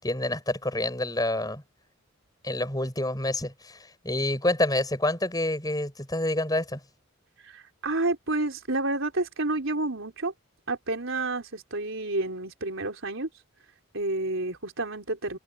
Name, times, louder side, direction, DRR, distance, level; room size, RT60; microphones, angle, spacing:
voice 1, 0.0-1.6 2.4-6.8, left 1 dB, 20° left, 7.3 m, -28 dB
voice 2, 7.4-10.3 10.7-13.3 13.9-15.4, right 2 dB, 65° right, 4.3 m, -29 dB
head